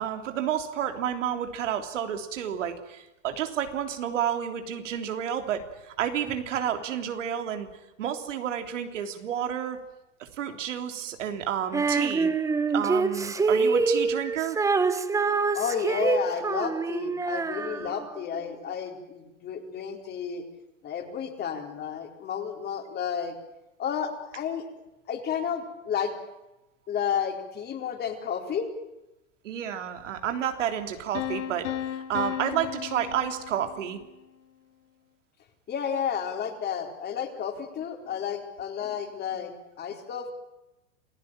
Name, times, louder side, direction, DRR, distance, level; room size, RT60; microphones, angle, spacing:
voice 1, 0.0-7.7 8.0-9.8 10.2-12.3 12.7-14.6 29.4-31.7 31.9-34.0, right 9 dB, 80° right, 6 dB, 3.4 m, -30 dB
Female singing, 11.7-18.2, right 4 dB, 10° right, 0.9 m, -26 dB
voice 2, 15.5-20.4 20.8-23.3 23.8-24.6 25.1-26.2 26.9-28.7 35.7-40.3, left 8 dB, 25° left, 4 dB, 4.1 m, -31 dB
sound 1, 31.1-34.0, left 11 dB, 75° left, 2.3 m, -34 dB
27.5 x 16.5 x 8.9 m, 0.96 s
supercardioid pair, 135°, 36 cm